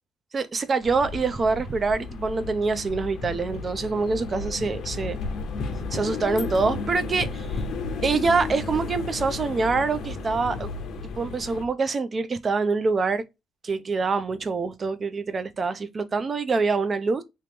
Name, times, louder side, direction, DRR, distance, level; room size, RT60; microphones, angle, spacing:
voice 1, 0.3-5.2 5.6-7.5 8.0-10.7 11.0-13.2 13.6-17.2, right 4 dB, 30° right, 0.4 m, -25 dB
sound 1, 0.8-11.6, left 4 dB, 55° left, 0.7 m, -33 dB
sound 2, 4.6-11.7, left 5 dB, 75° right, 1.4 m, -43 dB
2.9 x 2.9 x 3.4 m
cardioid pair, 145°, 0 cm